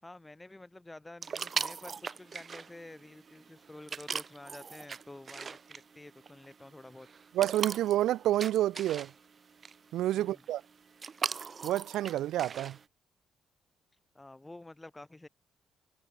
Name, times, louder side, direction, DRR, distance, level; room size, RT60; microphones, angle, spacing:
voice 1, 0.0-7.1 10.1-10.4 14.1-15.3, left 2 dB, 15° left, 4.3 m, -50 dB
sound 1, 1.2-12.8, right 5 dB, 40° right, 2.6 m, -41 dB
voice 2, 7.3-9.1 9.9-10.6 11.6-12.8, right 13 dB, 85° right, 0.5 m, -29 dB
cardioid pair, 90°, 0 cm